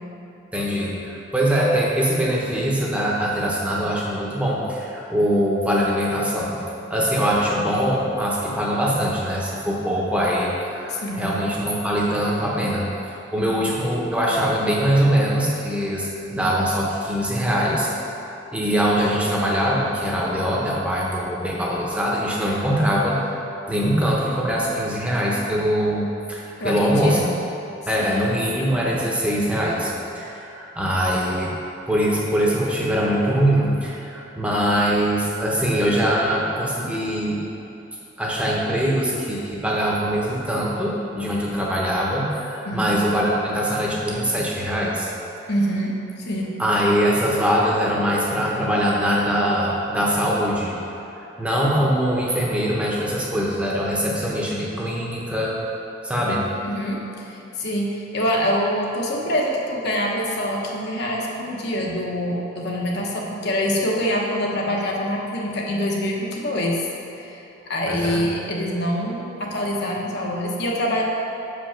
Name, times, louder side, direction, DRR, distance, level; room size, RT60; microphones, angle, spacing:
voice 1, 0.5-6.6 6.9-18.1 18.5-23.4 23.7-27.2 27.8-31.5 31.9-37.4 38.2-45.1 46.6-50.7 51.2-55.5 56.0-56.5 67.9-68.2, equal, 5° right, -4 dB, 1.1 m, -22 dB
voice 2, 10.9-11.3 13.4-13.6 26.6-27.3 28.0-28.3 42.7-42.9 45.5-46.5 56.6-66.8 67.1-67.4 67.7-71.0, equal, 55° left, -2 dB, 1.1 m, -25 dB
6.9 x 5.2 x 5.8 m, 3.0 s
head